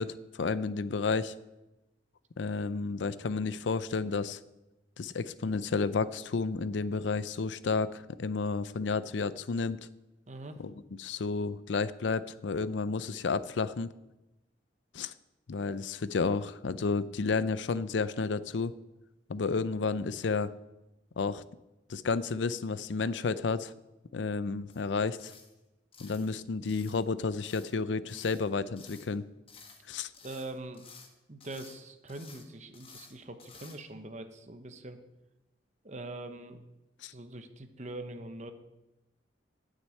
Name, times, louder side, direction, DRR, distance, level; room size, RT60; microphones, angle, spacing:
voice 1, 0.0-1.3 2.4-4.4 5.0-9.8 10.6-10.7 11.0-13.9 14.9-15.1 15.5-18.7 19.3-20.5 21.2-21.4 21.9-23.7 24.1-25.3 26.0-29.2 29.9-30.1 37.0-37.1, left 4 dB, 90° left, 16 dB, 0.5 m, -31 dB
voice 2, 10.3-10.6 30.2-30.8 31.3-35.0 35.8-36.6 37.1-38.5, right 2 dB, 40° right, 8 dB, 1.0 m, -43 dB
sound 1, 24.7-24.9 25.2-25.5 25.9-26.3 26.6-27.0 27.4-27.8 28.1-28.5 28.8-29.1 29.5-29.9 30.1-31.1 31.4-31.8 32.1-32.5 32.7-33.1 33.4-33.8, left 5 dB, 30° left, 1.3 m, -53 dB
9.3 x 6.6 x 8.7 m, 0.98 s
head